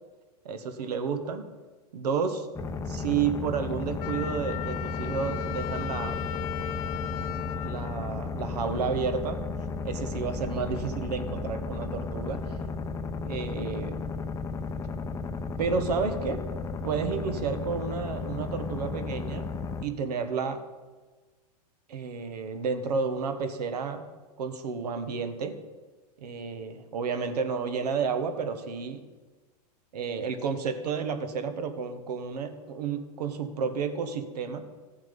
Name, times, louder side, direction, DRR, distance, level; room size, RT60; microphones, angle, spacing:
voice 1, 0.4-1.5 1.9-2.5 2.9-6.2 7.6-9.4 9.8-12.6 13.2-14.0 15.6-16.4 16.8-19.5 19.8-20.6 21.9-24.0 24.4-25.6 26.2-29.0 29.9-34.7, right 5 dB, 75° right, 9 dB, 1.4 m, -31 dB
sound 1, 2.6-19.9, left 4 dB, 15° left, 0.7 m, -34 dB
Wind instrument woodwind instrument, 4.0-8.8, left 14 dB, 65° left, 0.6 m, -37 dB
14.5 x 7.3 x 5.3 m, 1.3 s
hypercardioid pair, 115°, 20 cm